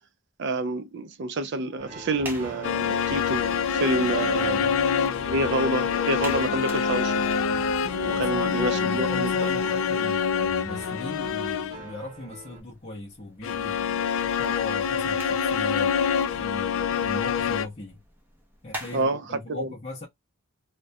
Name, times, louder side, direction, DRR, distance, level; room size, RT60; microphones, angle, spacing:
voice 1, 0.4-4.6 5.2-7.3 7.9-9.3 18.9-19.7, right 2 dB, 55° right, 0.4 m, -28 dB
sound 1, 1.8-12.6, right 1 dB, 35° right, 0.9 m, -42 dB
sound 2, 1.9-19.1, equal, 10° right, 0.6 m, -47 dB
sound 3, 2.6-11.9 13.4-17.7, left 7 dB, 70° left, 0.3 m, -26 dB
voice 2, 4.4-4.7 8.1-18.0 18.6-20.1, left 2 dB, 35° left, 0.6 m, -38 dB
2.3 x 2.1 x 2.5 m
head